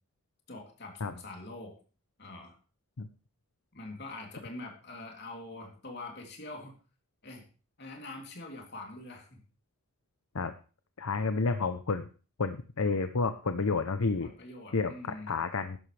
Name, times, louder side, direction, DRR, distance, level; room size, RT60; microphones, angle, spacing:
voice 1, 0.5-1.7 2.2-2.5 3.7-6.8 7.2-7.4 7.8-9.4 14.2-15.3, left 2 dB, 50° left, 1 dB, 3.0 m, -44 dB
voice 2, 11.0-12.1 12.4-14.3 14.7-14.9 15.3-15.8, left 4 dB, 70° left, 9 dB, 0.7 m, -30 dB
12.5 x 11.0 x 3.3 m, 0.36 s
head